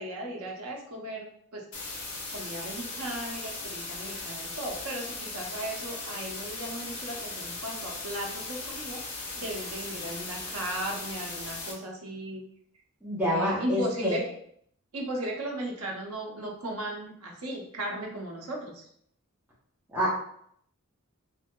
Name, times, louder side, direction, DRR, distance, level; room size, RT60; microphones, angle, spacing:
voice 1, 0.0-1.7 2.3-9.0 9.3-12.4 13.3-14.2 14.9-18.8, right 1 dB, 85° right, 0 dB, 0.7 m, -36 dB
sound 1, 1.7-11.7, left 3 dB, 75° left, 0.9 m, -38 dB
voice 2, 13.0-14.2 19.9-20.2, equal, 10° right, -8 dB, 0.8 m, -27 dB
3.1 x 2.7 x 2.2 m, 0.67 s
head